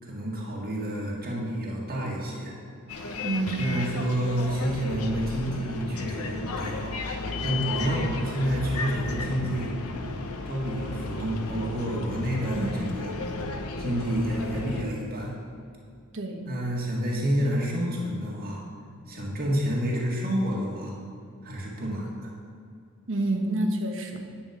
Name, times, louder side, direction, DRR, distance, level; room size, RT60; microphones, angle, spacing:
voice 1, 0.0-2.5 3.6-7.0 7.4-9.7 10.5-13.1 13.8-15.3 16.5-18.6 19.1-20.9 21.4-22.3, equal, 45° right, -3 dB, 1.9 m, -29 dB
Bus, 2.9-14.8, left 3 dB, 80° left, 1.0 m, -34 dB
voice 2, 3.2-3.7 12.5-12.8 16.1-16.5 23.1-24.3, right 2 dB, 60° right, 4 dB, 1.3 m, -28 dB
9.4 x 9.3 x 5.1 m, 2.4 s
head